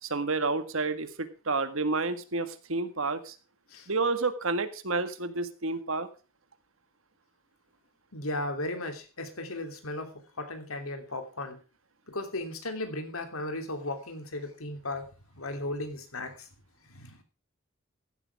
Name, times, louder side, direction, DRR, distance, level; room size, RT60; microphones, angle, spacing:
voice 1, 0.0-3.3 3.9-6.1, right 3 dB, 75° right, 10 dB, 1.7 m, -30 dB
voice 2, 8.1-11.6 12.1-15.1 15.3-16.5 16.9-17.2, left 2 dB, 90° left, 6 dB, 3.1 m, -36 dB
15.0 x 11.5 x 3.5 m, 0.34 s
head